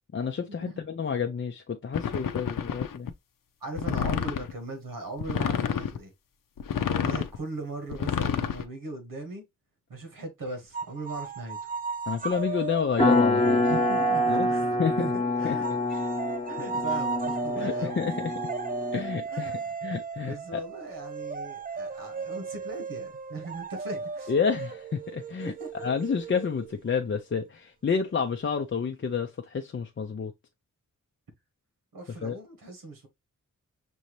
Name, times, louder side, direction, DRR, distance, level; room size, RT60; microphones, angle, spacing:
voice 1, 0.1-3.1 12.1-13.7 14.3-15.1 15.4-15.6 15.9-16.0 17.6-18.3 18.9-20.6 24.3-30.3 32.2-32.4, left 6 dB, 35° left, 0.5 m, -30 dB
sound 1, 1.9-3.1 3.8-4.5 5.2-6.0 6.6-7.4 7.9-8.6, left 8 dB, 80° left, 0.7 m, -29 dB
voice 2, 3.6-6.1 6.9-9.5 9.9-11.7 13.7-15.8 16.5-18.0 19.3-19.7 20.2-24.3 25.4-25.9 31.9-33.1, right 2 dB, 90° right, 1.7 m, -39 dB
sound 2, 10.7-15.1 15.6-27.0, right 5 dB, 25° right, 0.4 m, -36 dB
sound 3, 13.0-19.2, left 1 dB, 20° left, 1.0 m, -26 dB
6.1 x 2.8 x 3.1 m
wide cardioid pair, 115°, 33 cm